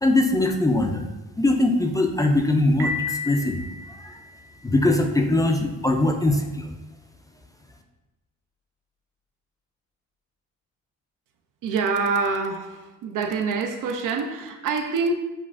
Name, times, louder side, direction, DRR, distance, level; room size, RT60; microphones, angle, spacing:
voice 1, 0.0-1.0 1.4-3.6 4.0-4.2 4.6-6.7, left 2 dB, 10° left, 0.3 m, -21 dB
Piano, 2.8-4.7, left 4 dB, 45° right, 1.0 m, -32 dB
voice 2, 11.6-15.1, right 4 dB, 75° right, 0.6 m, -26 dB
7.2 x 2.4 x 2.5 m
cardioid pair, 120°, 32 cm